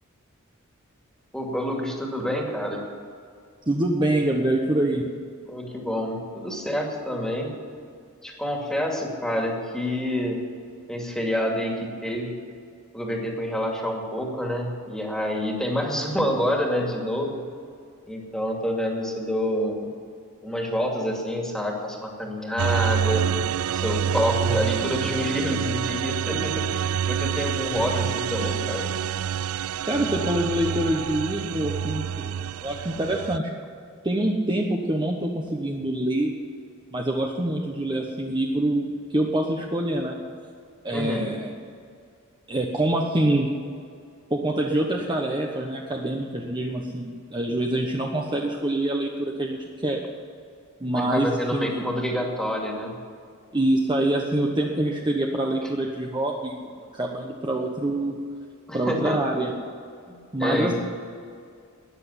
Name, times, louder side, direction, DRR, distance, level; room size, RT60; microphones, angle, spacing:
voice 1, 1.3-2.8 5.5-7.5 8.2-10.4 10.9-12.4 12.9-17.4 18.1-19.9 20.4-23.2 23.7-28.9 40.9-41.3 50.9-53.0 58.7-59.2 60.1-60.8, equal, 5° left, 0 dB, 2.3 m, -27 dB
voice 2, 3.7-5.1 29.9-33.5 34.0-36.3 36.9-40.2 40.8-41.5 42.5-43.5 44.3-50.0 50.8-51.9 53.5-56.6 56.9-58.2 58.7-59.5 60.3-60.8, right 1 dB, 20° right, 0 dB, 1.1 m, -25 dB
sound 1, 22.6-33.4, right 8 dB, 70° right, 0.3 m, -27 dB
13.5 x 9.8 x 9.8 m, 2.3 s
head